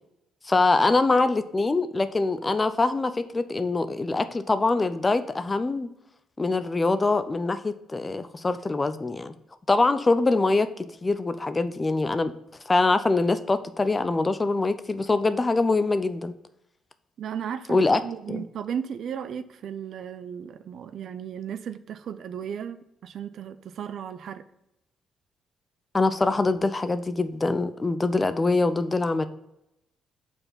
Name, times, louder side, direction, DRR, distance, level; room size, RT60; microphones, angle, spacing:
voice 1, 0.4-5.9 6.4-9.3 9.7-10.7 11.0-12.3 12.7-16.3 17.7-18.0 18.3-18.4 25.9-29.3, left 3 dB, 25° left, 0.5 m, -24 dB
voice 2, 17.2-24.5, right 8 dB, 65° right, 0.4 m, -35 dB
5.5 x 4.4 x 5.6 m
cardioid pair, 90°, 0 cm